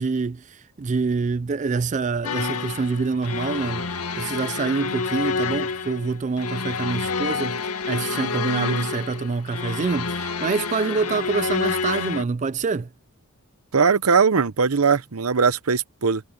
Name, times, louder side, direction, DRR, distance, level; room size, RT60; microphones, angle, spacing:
voice 1, 0.0-7.6 7.9-12.9, right 4 dB, 35° right, 0.4 m, -26 dB
sound 1, 2.2-12.2, left 4 dB, 85° left, 1.9 m, -28 dB
voice 2, 13.7-16.2, right 5 dB, 70° right, 0.8 m, -20 dB
head